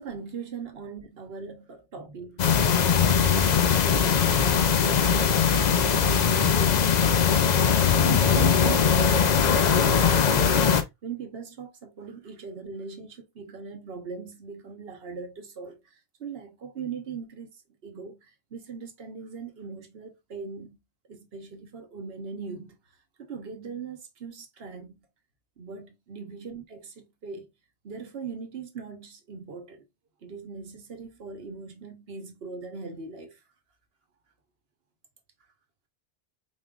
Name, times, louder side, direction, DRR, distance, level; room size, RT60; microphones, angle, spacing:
voice 1, 0.0-3.7 4.0-10.7 11.0-15.8 16.2-17.5 17.8-20.8 21.1-22.8 23.2-25.0 25.6-27.5 27.8-29.8 30.2-33.4, right 5 dB, 60° right, 1.1 m, -40 dB
sound 1, 2.4-10.8, left 7 dB, 50° left, 0.5 m, -21 dB
4.1 x 3.6 x 2.3 m
omnidirectional pair, 1.2 m